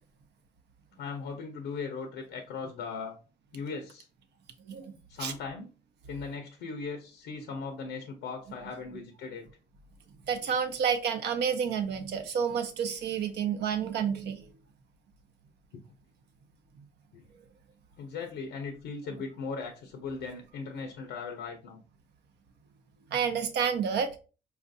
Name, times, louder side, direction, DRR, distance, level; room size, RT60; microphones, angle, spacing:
voice 1, 1.0-3.2 3.5-4.1 5.1-5.7 6.1-9.5 15.7-15.8 17.1-17.2 18.0-21.8, left 4 dB, 90° left, 0.6 m, -38 dB
voice 2, 4.7-5.3 10.3-14.5 23.1-24.1, right 7 dB, 70° right, 0.7 m, -30 dB
4.3 x 2.4 x 2.5 m
supercardioid pair, 70°, 18 cm